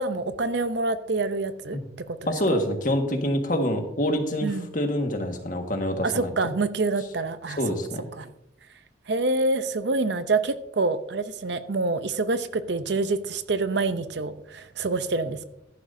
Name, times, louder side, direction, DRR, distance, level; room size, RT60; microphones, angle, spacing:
voice 1, 0.0-2.3 4.4-4.7 6.0-7.6 8.2-8.3 9.1-15.4, right 3 dB, 60° right, 12 dB, 0.6 m, -27 dB
voice 2, 2.3-6.3 7.6-8.1, equal, 40° left, 4 dB, 1.6 m, -26 dB
14.5 x 11.5 x 2.7 m, 0.83 s
head